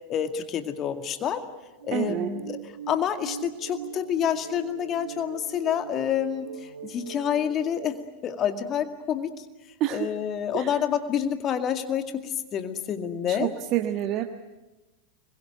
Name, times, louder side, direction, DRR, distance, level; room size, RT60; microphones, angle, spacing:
voice 1, 0.1-1.4 1.8-8.0 8.2-9.5 9.9-13.5, left 9 dB, 30° left, 7 dB, 2.1 m, -28 dB
sound 1, 1.8-7.9, right 9 dB, 65° right, 4.3 m, -41 dB
voice 2, 1.9-2.3 9.8-10.1 10.5-10.7 13.3-14.2, right 13 dB, 35° right, 5 dB, 1.3 m, -27 dB
26.0 x 22.0 x 9.1 m, 1.1 s
figure-of-eight pair, 90°, 0 cm